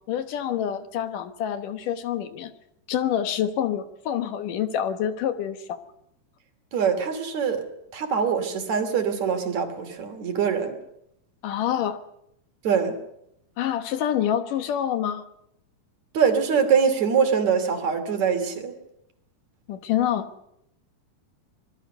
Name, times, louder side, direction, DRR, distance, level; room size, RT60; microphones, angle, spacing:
voice 1, 0.1-2.5 2.9-5.8 11.4-12.0 13.6-15.3 19.7-20.3, left 10 dB, 75° left, 10 dB, 2.9 m, -27 dB
voice 2, 6.7-7.6 7.9-10.8 12.6-13.0 16.1-18.7, right 6 dB, 60° right, 7 dB, 3.9 m, -23 dB
25.5 x 20.0 x 6.7 m, 0.77 s
omnidirectional pair, 3.8 m